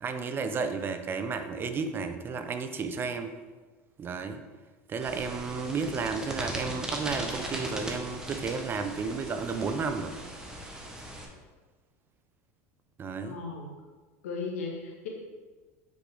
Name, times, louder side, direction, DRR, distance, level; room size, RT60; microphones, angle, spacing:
voice 1, 0.0-3.3 4.0-4.4 4.9-10.2 13.0-13.4, right 5 dB, 30° right, 7 dB, 0.7 m, -32 dB
sound 1, 5.0-11.2, right 1 dB, 10° right, 1.2 m, -38 dB
voice 2, 13.2-13.7 14.2-15.1, left 4 dB, 90° left, -1 dB, 1.5 m, -36 dB
8.2 x 5.1 x 3.4 m, 1.3 s
supercardioid pair, 115°, 8 cm